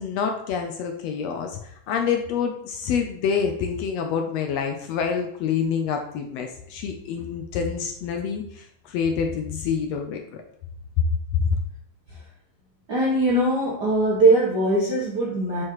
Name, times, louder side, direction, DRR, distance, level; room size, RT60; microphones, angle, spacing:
voice 1, 0.0-10.4 11.3-11.6, left 6 dB, 75° left, 4 dB, 1.6 m, -27 dB
voice 2, 12.9-15.6, right 2 dB, 65° right, -5 dB, 1.0 m, -21 dB
7.5 x 4.7 x 3.0 m, 0.69 s
omnidirectional pair, 3.4 m